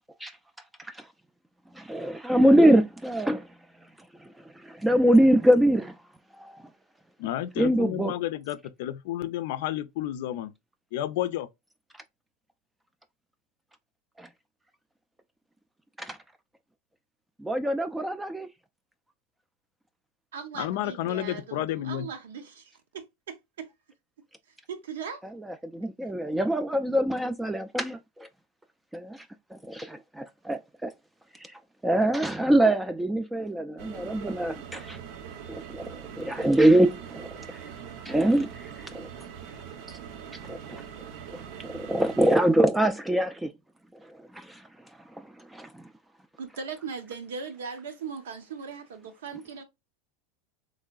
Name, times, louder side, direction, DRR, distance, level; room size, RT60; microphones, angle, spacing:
voice 1, 1.8-3.5 4.2-4.3 4.6-6.0 6.3-6.7 7.6-8.1 14.2-14.3 16.0-16.2 17.4-18.5 25.4-28.3 28.9-29.3 29.5-30.9 31.4-35.0 35.5-37.6 38.1-39.1 39.9-40.0 40.5-40.8 41.3-43.5 44.3-44.6 45.5-45.8, right 1 dB, 5° right, 0.3 m, -24 dB
voice 2, 7.2-10.5 10.9-11.5 20.6-22.1, left 13 dB, 70° left, 0.4 m, -31 dB
voice 3, 20.3-23.7 24.7-25.2 46.4-49.6, right 6 dB, 90° right, 0.9 m, -39 dB
sound 1, 33.8-42.4, right 8 dB, 65° right, 0.6 m, -42 dB
3.7 x 3.1 x 2.3 m
supercardioid pair, 120°, 0 cm